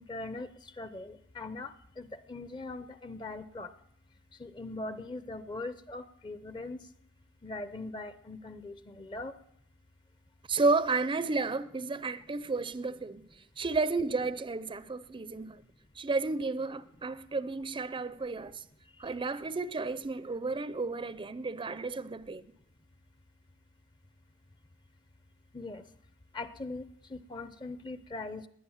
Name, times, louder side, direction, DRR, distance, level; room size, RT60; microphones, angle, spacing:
voice 1, 0.0-3.7 4.4-6.8 7.4-9.3 25.5-25.8 26.3-28.5, left 2 dB, 20° left, 0.6 m, -41 dB
voice 2, 10.5-13.2 13.6-15.6 16.0-18.6 19.0-22.4, right 3 dB, 20° right, 0.5 m, -32 dB
19.5 x 10.0 x 7.1 m
head